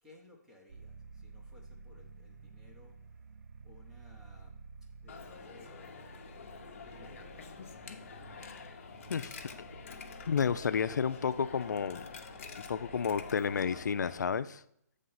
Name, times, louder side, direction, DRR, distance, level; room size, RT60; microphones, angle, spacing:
voice 1, 0.0-3.0 3.6-4.6 5.0-7.7, left 2 dB, 5° right, -1 dB, 0.7 m, -60 dB
sound 1, 0.7-14.2, right 4 dB, 90° right, 0.3 m, -53 dB
Coin (dropping), 5.1-14.2, left 5 dB, 45° left, 0.7 m, -48 dB
voice 2, 8.3-8.7 9.1-9.4 10.3-12.1 12.7-14.6, left 6 dB, 85° left, 13 dB, 0.4 m, -31 dB
7.4 x 3.3 x 5.5 m, 0.72 s
hypercardioid pair, 165°, 9 cm